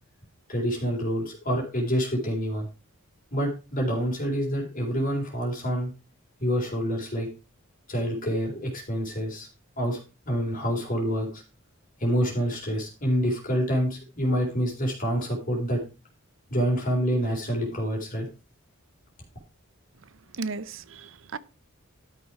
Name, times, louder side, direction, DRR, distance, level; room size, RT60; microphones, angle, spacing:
voice 1, 0.5-2.7 3.3-5.9 6.4-7.3 7.9-9.5 9.8-10.0 10.3-11.4 12.0-15.8 16.5-18.3, equal, 40° left, 3.8 m, -27 dB
voice 2, 20.3-21.4, right 3 dB, 65° right, 0.8 m, -35 dB
12.5 x 6.3 x 4.8 m
head